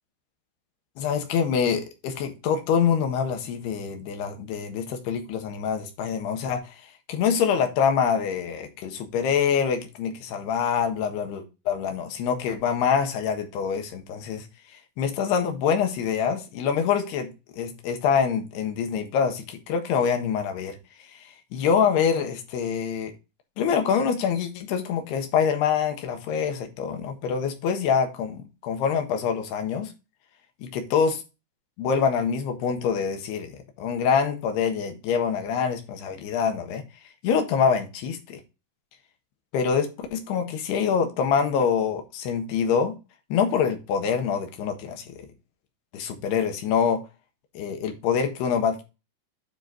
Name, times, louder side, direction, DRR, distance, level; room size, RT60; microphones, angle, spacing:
voice 1, 1.0-6.8 7.1-14.4 15.0-20.8 21.5-23.1 23.6-29.9 30.6-31.2 31.8-36.8 37.2-38.4 39.5-43.0 43.3-45.2 45.9-47.0 47.5-48.8, left 7 dB, 70° left, 3.3 m, -25 dB
10.0 x 4.5 x 4.0 m
omnidirectional pair, 5.2 m